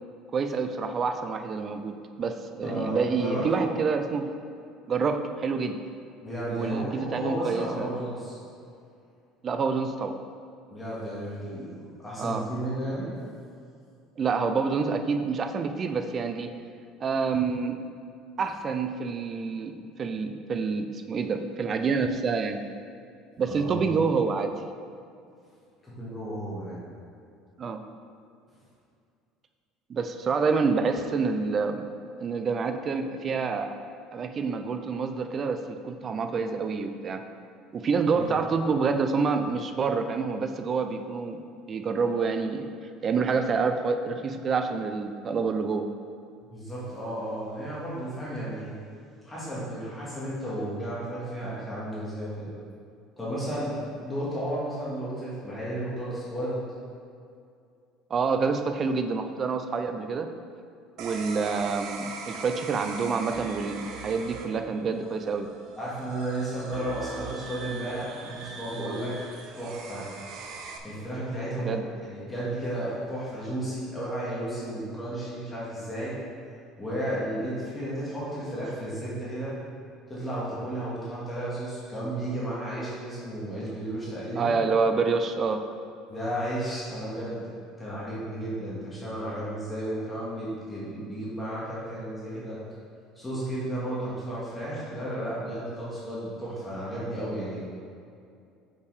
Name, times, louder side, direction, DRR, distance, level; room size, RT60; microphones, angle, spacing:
voice 1, 0.3-4.3 4.9-5.8 6.5-7.9 9.4-10.2 12.2-12.4 14.2-16.5 17.0-17.8 18.4-22.6 23.4-24.5 27.6-27.8 29.9-31.9 32.2-33.8 34.1-37.2 37.7-41.4 41.7-42.7 43.0-45.9 58.1-60.3 61.0-65.5 71.6-71.9 84.3-85.6, right 5 dB, 30° right, 7 dB, 0.5 m, -27 dB
voice 2, 2.6-3.6 6.2-8.4 10.7-13.1 23.5-23.9 25.8-26.8 38.1-38.3 46.5-48.7 49.2-52.5 53.2-53.7 54.0-56.6 65.7-69.1 69.6-70.1 70.8-71.7 72.0-76.2 76.8-79.5 80.1-84.6 86.1-87.4 87.8-92.6 93.2-97.6, right 1 dB, 10° left, -9 dB, 1.9 m, -33 dB
sound 1, 61.0-70.8, right 4 dB, 55° right, 0.8 m, -41 dB
6.8 x 5.6 x 4.8 m, 2.4 s
cardioid pair, 145°, 0 cm